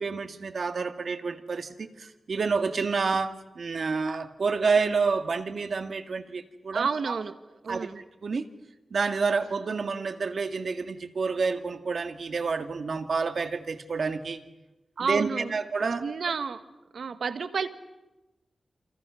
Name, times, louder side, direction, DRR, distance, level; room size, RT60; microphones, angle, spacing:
voice 1, 0.0-7.2 7.7-7.9 8.2-8.4 8.9-14.4 15.1-16.0, right 4 dB, 60° right, 1.9 m, -29 dB
voice 2, 6.7-7.4 7.6-8.0 15.0-15.6 16.0-16.6 16.9-17.7, right 5 dB, 75° right, 1.6 m, -30 dB
28.5 x 28.5 x 6.4 m
wide cardioid pair, 135°, 0 cm